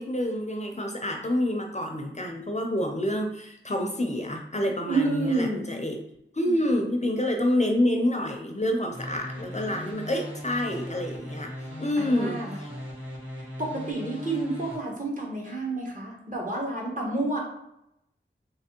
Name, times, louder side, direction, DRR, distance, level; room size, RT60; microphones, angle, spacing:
voice 1, 0.0-6.0 6.3-11.5 11.8-12.7, left 1 dB, 35° left, 3 dB, 0.5 m, -28 dB
voice 2, 4.9-5.8 12.0-12.6 13.4-17.4, right 2 dB, 40° right, -3 dB, 1.2 m, -29 dB
sound 1, 8.9-14.7, equal, 70° right, 1.5 m, -39 dB
3.3 x 3.2 x 2.9 m, 0.82 s
wide cardioid pair, 50°, 21 cm